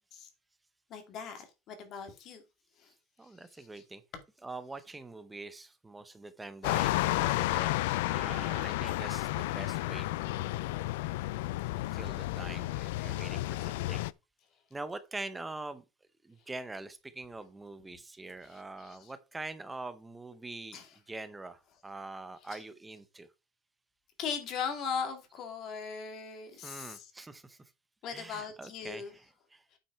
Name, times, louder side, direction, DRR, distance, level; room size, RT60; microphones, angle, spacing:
voice 1, 0.9-2.4 2.8-2.9 3.5-3.8 18.4-19.1 20.7-21.0 22.4-22.6 24.2-27.1 28.0-29.1 29.7-29.8, left 6 dB, 35° left, 2.2 m, -39 dB
voice 2, 3.2-4.0 4.4-10.8 11.7-14.1 14.7-15.8 16.2-20.8 21.1-23.3 24.8-24.9 26.6-27.6 28.1-29.6, right 2 dB, 10° right, 0.7 m, -44 dB
sound 1, 6.6-14.1, left 18 dB, 85° left, 0.4 m, -32 dB
8.8 x 5.5 x 4.6 m
cardioid pair, 165°, 0 cm